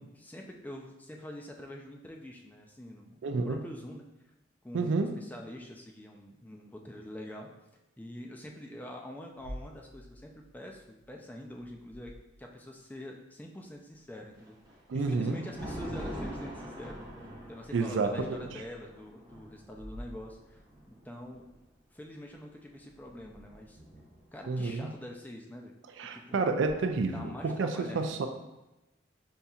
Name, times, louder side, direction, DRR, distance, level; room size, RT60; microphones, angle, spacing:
voice 1, 0.0-4.1 4.6-7.5 8.0-12.1 12.4-14.6 14.9-17.1 17.5-20.6 20.9-21.5 21.9-23.8 24.3-25.7 26.1-26.4 27.1-28.1, left 1 dB, 10° left, 1 dB, 0.3 m, -45 dB
voice 2, 3.2-3.6 4.7-5.1 14.9-15.4 17.7-18.4 24.5-24.9 26.0-28.3, right 3 dB, 80° right, 6 dB, 0.4 m, -29 dB
sound 1, 9.3-12.8 17.3-17.4 18.3-18.4 19.6-20.9 26.5-26.7, equal, 50° left, 0.7 m, -49 dB
Thunder, 14.3-21.5 22.6-24.3, equal, 20° right, 0.7 m, -44 dB
5.4 x 2.7 x 2.3 m, 0.97 s
head